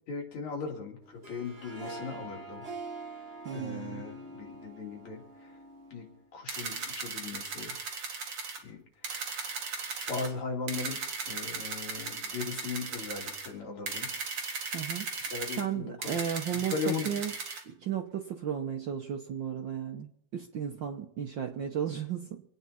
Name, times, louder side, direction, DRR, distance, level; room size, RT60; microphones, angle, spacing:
voice 1, 0.1-2.6 3.5-5.6 5.9-6.0 6.3-7.7 8.6-9.2 10.1-11.0 11.3-14.1 15.2-16.2 16.5-17.1, left 4 dB, 65° left, 0 dB, 3.9 m, -38 dB
Harp, 1.0-6.2, right 2 dB, 70° right, 0.5 m, -44 dB
voice 2, 3.4-4.0 14.7-15.1 15.6-17.3 17.7-22.4, right 8 dB, 85° right, 3 dB, 1.0 m, -34 dB
sound 1, 6.5-8.6 9.0-10.3 10.7-13.5 13.9-15.6 16.0-17.6, right 4 dB, 50° right, 2.6 m, -37 dB
26.5 x 9.6 x 4.3 m, 0.71 s
omnidirectional pair, 3.4 m